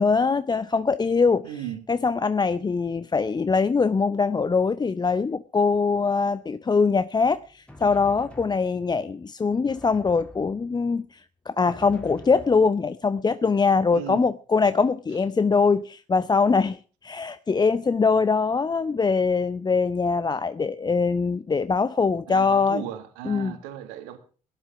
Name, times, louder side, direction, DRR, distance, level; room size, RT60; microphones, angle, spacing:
voice 1, 0.0-1.5 1.9-11.2 11.5-22.8 23.2-23.5, left 4 dB, 25° left, 0.7 m, -23 dB
voice 2, 1.4-1.8 13.9-14.3 22.3-24.2, right 11 dB, 75° right, 1.8 m, -36 dB
Drum, 7.2-9.1 9.7-11.0 11.7-13.2, left 1 dB, 5° left, 3.2 m, -47 dB
16.5 x 11.0 x 6.0 m
figure-of-eight pair, 45°, 17 cm